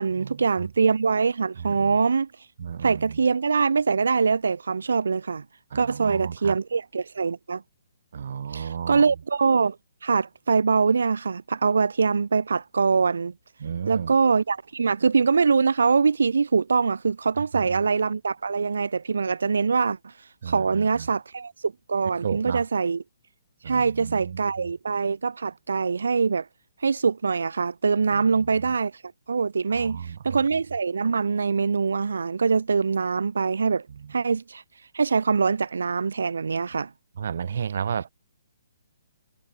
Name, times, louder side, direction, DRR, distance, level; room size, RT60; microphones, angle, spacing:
voice 1, 0.0-2.3 2.8-5.4 5.7-7.6 8.5-9.8 10.0-13.3 13.9-20.1 20.5-23.0 23.6-26.5 26.8-29.0 29.3-34.6 34.9-36.9, right 5 dB, 85° right, 0.3 m, -23 dB
voice 2, 1.6-2.0 2.6-3.2 5.7-6.6 8.1-9.0 13.6-14.1 17.5-17.8 20.4-21.1 22.2-22.6 23.6-24.8 28.1-28.8 29.7-30.4 33.9-34.1 37.2-38.1, right 7 dB, 60° right, 1.7 m, -33 dB
hypercardioid pair, 160°, 0 cm